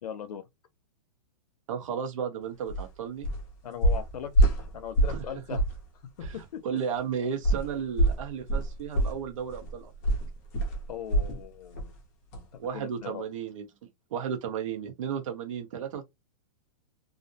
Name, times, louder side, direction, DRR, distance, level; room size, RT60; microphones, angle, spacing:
voice 1, 0.0-0.4 3.6-5.6 6.3-6.8 10.9-11.9 12.7-13.2, left 8 dB, 85° left, 0.6 m, -39 dB
voice 2, 1.7-3.3 5.1-5.2 6.2-6.4 6.6-9.9 12.6-13.6 14.1-16.0, right 7 dB, 55° right, 1.0 m, -34 dB
sound 1, 2.7-2.9 3.2-3.5 3.8-5.3 5.5-5.8 6.2-6.3 7.4-11.4 11.7-12.0 12.3-12.4, right 1 dB, 25° left, 0.6 m, -25 dB
2.5 x 2.0 x 2.7 m
hypercardioid pair, 170°, 19 cm